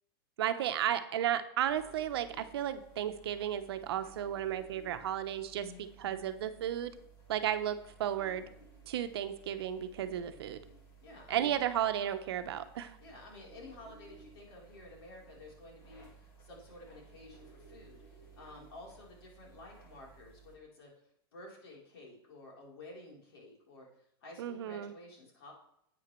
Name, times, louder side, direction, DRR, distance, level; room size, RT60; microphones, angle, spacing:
voice 1, 0.4-5.7 6.0-7.0 7.3-8.5 8.9-10.6 11.3-13.0 24.4-24.9, right 10 dB, 85° right, 9 dB, 0.8 m, -34 dB
sound 1, 1.6-20.6, right 5 dB, 25° left, 1.7 m, -57 dB
voice 2, 5.6-6.3 11.0-11.6 13.0-20.9 21.3-23.9 24.2-25.5, left 2 dB, 80° left, -2 dB, 3.5 m, -52 dB
11.0 x 8.5 x 3.1 m, 0.77 s
supercardioid pair, 170°, 13 cm